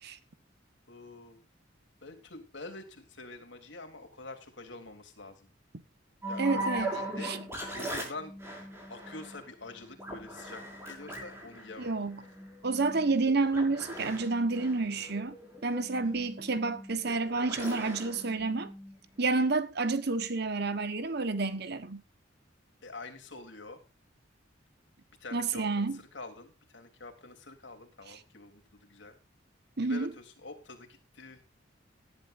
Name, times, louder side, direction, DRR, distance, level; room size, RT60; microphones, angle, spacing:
voice 1, 0.9-1.4 2.0-5.5 6.3-7.4 7.7-8.4 8.9-12.0 16.0-16.2 22.8-23.8 25.2-29.2 29.8-31.4, left 3 dB, 70° left, 3.4 m, -46 dB
sound 1, 6.2-19.3, right 1 dB, 15° right, 5.9 m, -40 dB
voice 2, 6.4-6.9 7.2-7.4 11.8-12.2 12.6-15.4 15.6-18.7 19.2-22.0 25.3-26.0 29.8-30.1, right 3 dB, 55° right, 1.2 m, -29 dB
18.5 x 11.0 x 2.6 m
head